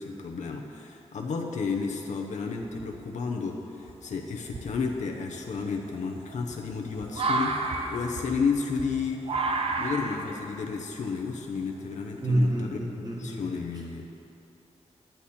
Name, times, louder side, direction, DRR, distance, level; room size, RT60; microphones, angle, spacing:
voice 1, 0.0-9.3 9.8-12.8 13.2-14.1, left 5 dB, 85° left, 1 dB, 0.8 m, -32 dB
sound 1, 2.6-3.2 3.8-3.9 4.4-12.5, right 3 dB, 50° right, 0.7 m, -32 dB
voice 2, 12.2-13.4, right 1 dB, 35° right, -2 dB, 1.6 m, -27 dB
10.5 x 10.0 x 4.3 m, 2.8 s
wide cardioid pair, 130°, 12 cm